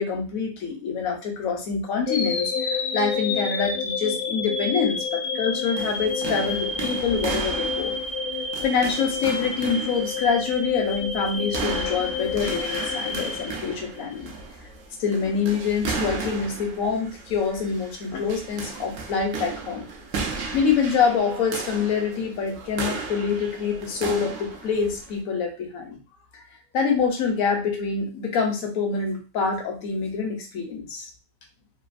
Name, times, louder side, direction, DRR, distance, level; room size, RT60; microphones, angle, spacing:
voice 1, 0.0-8.0 8.6-14.3 15.0-19.9 20.5-26.0 26.7-31.1, left 5 dB, 60° left, 2 dB, 1.1 m, -26 dB
sound 1, 2.1-14.2, left 4 dB, 80° left, 0.6 m, -29 dB
sound 2, 5.8-25.2, right 4 dB, 65° right, 0.8 m, -35 dB
3.2 x 2.4 x 2.4 m, 0.33 s
omnidirectional pair, 1.8 m